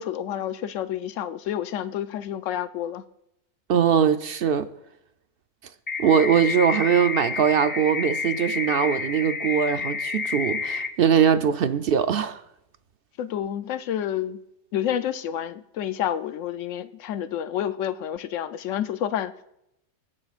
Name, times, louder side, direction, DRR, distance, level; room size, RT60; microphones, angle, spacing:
voice 1, 0.0-3.0 13.2-14.4 14.7-19.3, left 10 dB, 85° left, 1.0 m, -29 dB
voice 2, 3.7-4.7 6.0-12.4, right 8 dB, 60° right, 0.7 m, -21 dB
sound 1, 5.9-10.9, left 5 dB, 20° left, 0.6 m, -29 dB
22.0 x 9.6 x 2.4 m
omnidirectional pair, 1.3 m